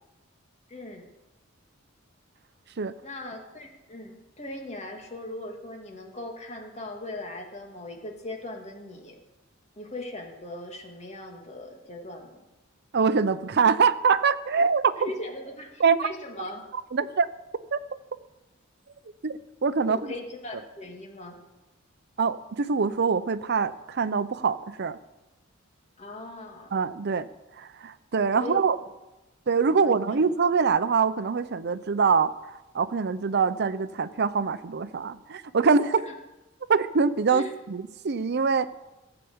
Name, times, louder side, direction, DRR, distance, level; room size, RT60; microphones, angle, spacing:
voice 1, 0.7-1.1 3.0-9.2 9.8-12.5 15.0-16.6 19.9-21.4 26.0-26.7 28.4-28.8 29.7-30.0 36.1-36.2 37.3-37.5, left 1 dB, 35° left, 2 dB, 2.2 m, -39 dB
voice 2, 12.9-14.9 15.8-16.1 16.9-17.3 17.7-17.8 19.2-20.1 22.2-25.0 26.7-27.3 27.5-28.8 29.5-36.1 36.7-38.7, right 5 dB, 55° right, 14 dB, 0.6 m, -24 dB
15.5 x 7.0 x 7.9 m, 1.0 s
head